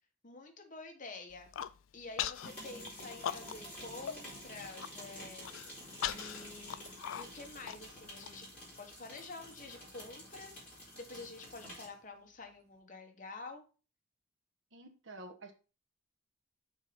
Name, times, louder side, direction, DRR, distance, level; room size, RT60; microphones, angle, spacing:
voice 1, 0.2-1.5 1.9-5.5 6.0-8.5 8.8-13.6, left 3 dB, 40° left, 4 dB, 1.2 m, -49 dB
Human voice, 1.3-1.7 2.2-2.5 2.9-3.8 4.1-4.2 4.6-4.9 5.4-8.3, left 10 dB, 80° left, 0.4 m, -39 dB
sound 1, 2.3-12.0, equal, 10° left, 3.7 m, -49 dB
voice 2, 14.7-15.5, right 2 dB, 75° right, 5 dB, 1.1 m, -49 dB
6.3 x 4.1 x 5.1 m, 0.35 s
head